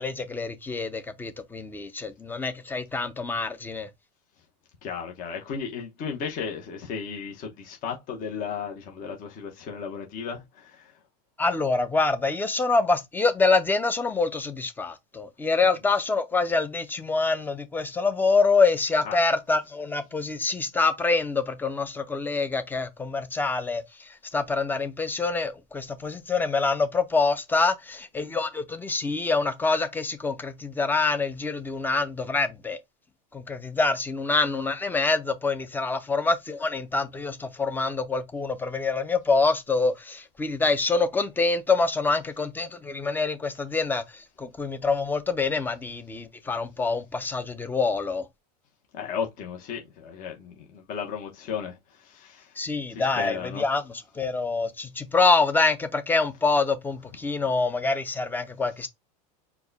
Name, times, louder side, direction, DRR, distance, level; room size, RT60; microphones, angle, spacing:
voice 1, 0.0-3.9 11.4-32.8 33.3-48.3 52.6-58.9, left 3 dB, 10° left, 0.5 m, -26 dB
voice 2, 4.8-11.0 19.0-19.3 48.9-52.6 52.9-53.6, left 6 dB, 45° left, 1.0 m, -35 dB
4.6 x 2.2 x 4.0 m
supercardioid pair, 130°, 20 cm